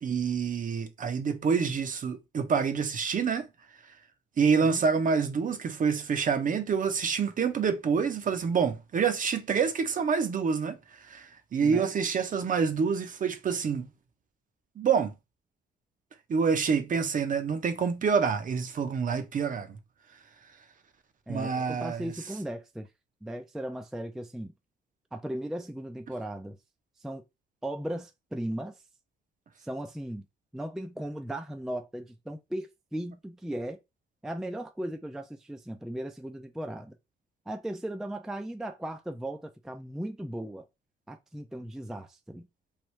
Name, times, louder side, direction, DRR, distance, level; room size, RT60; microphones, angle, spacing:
voice 1, 0.0-3.5 4.4-13.9 14.8-15.1 16.3-19.8 21.3-22.1, right 6 dB, 40° right, 0.6 m, -27 dB
voice 2, 11.6-11.9 21.3-22.9 23.2-24.5 25.1-26.6 27.0-27.2 27.6-28.8 29.6-30.3 30.5-33.8 34.2-37.0 37.5-40.7 41.1-42.5, right 1 dB, ahead, 0.4 m, -37 dB
3.2 x 2.5 x 3.1 m
cardioid pair, 90°, 20 cm